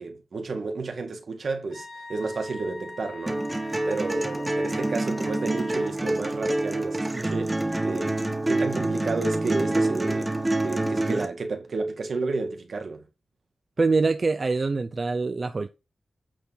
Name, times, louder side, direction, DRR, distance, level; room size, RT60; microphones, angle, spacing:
voice 1, 0.0-13.1, right 3 dB, 65° right, 2.0 m, -31 dB
Wind instrument woodwind instrument, 1.7-6.0, left 3 dB, 75° left, 3.5 m, -42 dB
sound 1, 3.3-11.2, right 2 dB, 15° right, 1.4 m, -27 dB
voice 2, 13.8-15.7, right 3 dB, 45° right, 0.6 m, -24 dB
8.9 x 4.0 x 5.7 m
wide cardioid pair, 90°, 0 cm